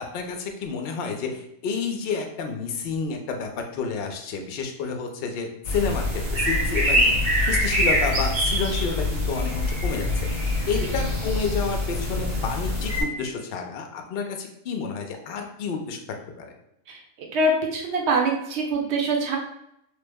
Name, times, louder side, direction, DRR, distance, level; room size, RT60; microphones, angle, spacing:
voice 1, 0.0-16.0 16.4-16.5, left 5 dB, 60° left, 4 dB, 0.6 m, -30 dB
sound 1, 5.7-13.0, left 1 dB, 90° right, 1.8 m, -24 dB
voice 2, 17.3-19.4, right 2 dB, 60° right, 1 dB, 0.9 m, -24 dB
3.2 x 2.0 x 3.4 m, 0.79 s
omnidirectional pair, 1.4 m